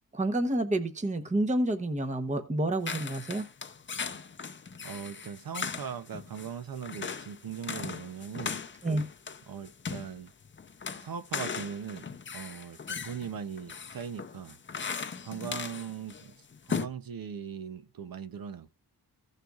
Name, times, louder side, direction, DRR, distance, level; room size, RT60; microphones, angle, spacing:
voice 1, 0.1-3.4 8.8-9.0, right 1 dB, 20° right, 0.9 m, -29 dB
sound 1, 2.9-16.3 16.5-16.9, left 5 dB, 30° left, 0.6 m, -38 dB
voice 2, 4.8-8.5 9.5-10.3 11.0-12.1 12.3-14.6 15.2-16.3 16.7-18.7, right 7 dB, 65° right, 0.7 m, -40 dB
16.0 x 6.6 x 2.4 m
wide cardioid pair, 145°, 38 cm